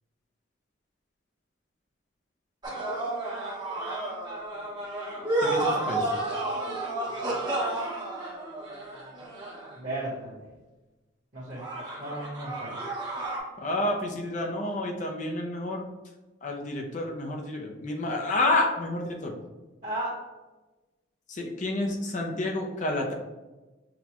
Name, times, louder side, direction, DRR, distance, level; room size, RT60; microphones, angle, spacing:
sound 1, 2.6-9.9 11.5-13.4, right 2 dB, 20° right, 0.9 m, -31 dB
voice 1, 5.4-6.1 13.6-15.8 16.4-19.3 21.3-23.1, left 2 dB, 40° left, 2 dB, 0.5 m, -29 dB
voice 2, 9.7-10.5 11.3-11.7 12.0-12.8 19.8-20.2, right 1 dB, 45° right, -11 dB, 1.2 m, -34 dB
6.0 x 2.2 x 2.9 m, 1.1 s
head